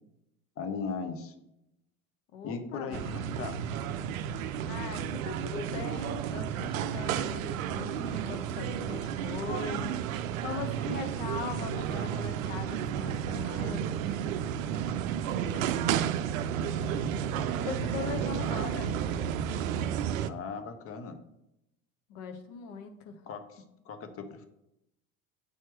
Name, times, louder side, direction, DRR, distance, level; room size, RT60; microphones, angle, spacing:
voice 1, 0.6-1.3 2.4-3.6 15.2-16.0 20.2-21.2 23.3-24.5, left 5 dB, 30° left, 8 dB, 0.8 m, -39 dB
voice 2, 2.3-3.1 4.7-14.0 16.8-16.9 17.6-18.9 22.1-23.2, left 6 dB, 55° left, 7 dB, 1.0 m, -40 dB
sound 1, 2.9-20.3, right 9 dB, 65° right, 0.5 m, -32 dB
8.2 x 4.4 x 3.1 m, 0.85 s
figure-of-eight pair, 70°, 43 cm